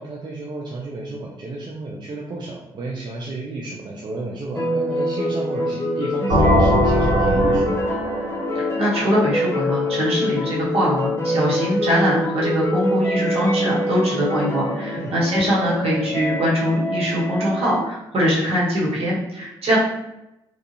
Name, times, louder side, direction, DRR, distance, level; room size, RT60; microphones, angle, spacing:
voice 1, 0.0-7.8 15.0-15.1, right 2 dB, 45° right, -3 dB, 0.5 m, -32 dB
sound 1, 4.5-17.8, equal, 25° left, 0.6 m, -25 dB
sound 2, 6.3-10.0, left 1 dB, 80° right, 0.8 m, -21 dB
voice 2, 8.5-19.8, equal, 65° right, -5 dB, 1.2 m, -22 dB
2.4 x 2.4 x 2.7 m, 0.92 s
supercardioid pair, 55°, 11 cm